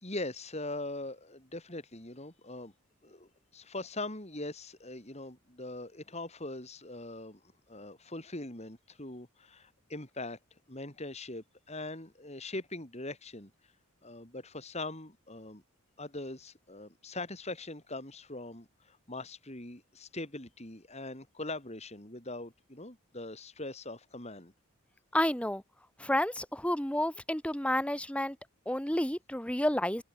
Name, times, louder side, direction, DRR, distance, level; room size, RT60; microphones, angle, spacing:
voice 1, 0.0-2.7 3.0-7.4 7.7-10.4 10.7-13.5 14.0-15.6 16.0-24.5, left 2 dB, 30° left, 3.5 m, -41 dB
voice 2, 25.1-25.6 26.0-28.4 28.7-30.0, left 1 dB, 5° left, 1.6 m, -30 dB
head